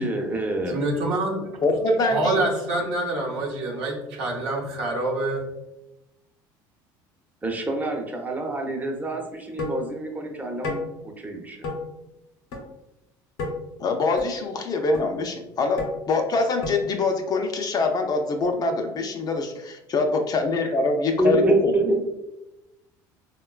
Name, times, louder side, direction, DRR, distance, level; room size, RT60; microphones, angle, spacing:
voice 1, 0.0-0.8 7.4-11.6 21.2-22.0, right 2 dB, 15° right, 2 dB, 0.7 m, -26 dB
voice 2, 0.7-1.6 2.1-5.5, right 2 dB, 75° right, -1 dB, 0.8 m, -26 dB
voice 3, 1.6-2.4 13.8-21.8, left 3 dB, 40° left, 4 dB, 0.5 m, -24 dB
sound 1, 9.6-9.8 10.6-10.9 11.6-11.8 12.5-12.6 13.4-13.5 14.2-14.3 14.9-15.0 15.8-15.9 16.6-16.8, left 3 dB, 75° left, 0.8 m, -30 dB
3.6 x 2.2 x 2.3 m, 0.94 s
supercardioid pair, 80°, 10 cm